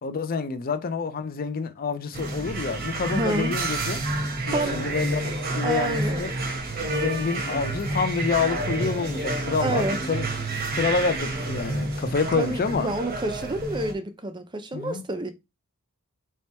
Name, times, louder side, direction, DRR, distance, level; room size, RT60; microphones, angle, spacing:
voice 1, 0.0-4.0 4.5-6.3 6.9-10.3 10.7-12.9 14.7-15.0, left 4 dB, 45° left, 0.5 m, -28 dB
sound 1, 2.1-13.9, right 2 dB, 45° right, 1.0 m, -29 dB
voice 2, 3.1-3.6 4.5-4.9 5.6-6.2 9.6-10.0 12.4-15.3, right 2 dB, 20° right, 0.5 m, -29 dB
3.3 x 3.0 x 4.2 m
head